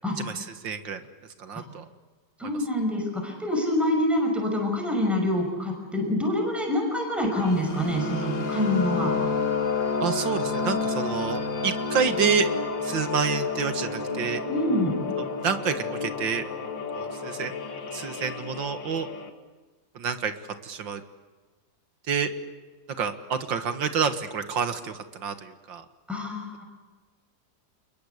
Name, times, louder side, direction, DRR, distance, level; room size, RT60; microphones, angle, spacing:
voice 1, 0.2-1.0 1.4-1.9 2.4-2.6 10.0-12.5 12.8-14.4 15.2-16.4 16.9-17.5 17.9-19.1 20.0-20.3 20.6-21.0 22.1-22.3 23.0-25.9, right 6 dB, 90° right, 9 dB, 2.4 m, -28 dB
voice 2, 2.4-9.1 14.5-14.9 26.1-26.6, left 1 dB, ahead, 1 dB, 5.8 m, -26 dB
sound 1, 7.3-19.3, left 4 dB, 85° left, 2.7 m, -30 dB
28.5 x 22.0 x 8.3 m, 1.3 s
omnidirectional pair, 2.0 m